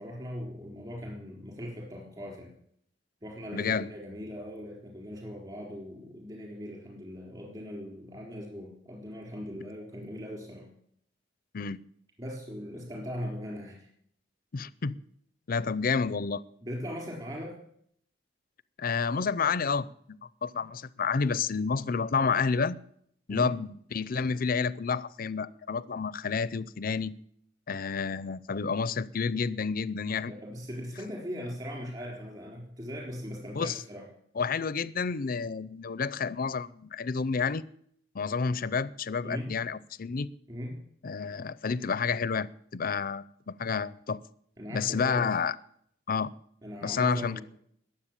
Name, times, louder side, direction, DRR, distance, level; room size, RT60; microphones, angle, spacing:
voice 1, 0.0-2.5 3.2-10.7 12.2-13.9 16.6-17.6 23.3-23.5 30.2-34.1 39.2-39.5 40.5-40.8 44.6-45.3 46.6-47.4, equal, 25° right, -1 dB, 4.0 m, -39 dB
voice 2, 3.5-3.9 11.5-11.8 14.5-15.0 15.5-16.4 18.8-22.8 23.3-27.1 27.7-30.3 33.5-33.8 34.4-37.6 38.1-40.3 41.0-44.2 44.7-45.5 46.1-46.3 46.8-47.4, left 5 dB, 50° left, 18 dB, 0.5 m, -30 dB
21.0 x 7.7 x 7.5 m, 0.69 s
head